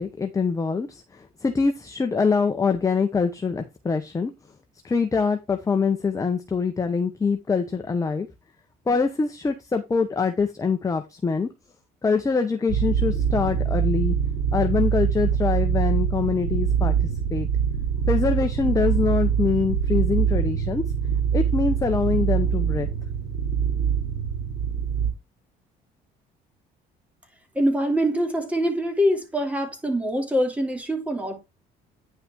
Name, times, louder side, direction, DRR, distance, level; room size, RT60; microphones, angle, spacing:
voice 1, 0.0-4.3 4.8-8.3 8.9-11.5 12.0-14.1 14.5-17.0 17.3-17.5 18.1-20.8 21.3-22.9, left 5 dB, 20° left, 1.0 m, -24 dB
sound 1, 12.7-25.1, right 7 dB, 90° right, 2.9 m, -24 dB
voice 2, 27.5-31.4, equal, 10° right, 2.6 m, -24 dB
9.7 x 5.6 x 3.7 m
cardioid pair, 110°, 17 cm